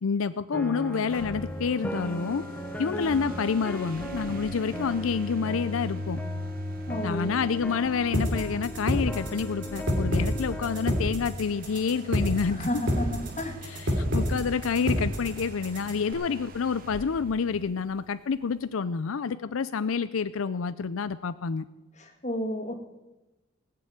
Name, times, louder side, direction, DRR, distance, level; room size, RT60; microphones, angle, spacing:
voice 1, 0.0-2.4 2.8-6.2 7.0-12.8 13.6-21.6, left 5 dB, 90° left, 13 dB, 0.5 m, -28 dB
sound 1, 0.5-11.1, left 1 dB, 10° left, 0.8 m, -38 dB
sound 2, 0.9-18.4, equal, 45° right, 1.0 m, -41 dB
voice 2, 6.9-7.4 12.5-13.6 22.0-22.7, left 1 dB, 35° left, 3 dB, 2.1 m, -32 dB
sound 3, 8.1-16.1, equal, 60° right, 3.3 m, -27 dB
18.5 x 6.9 x 9.5 m, 1.1 s
head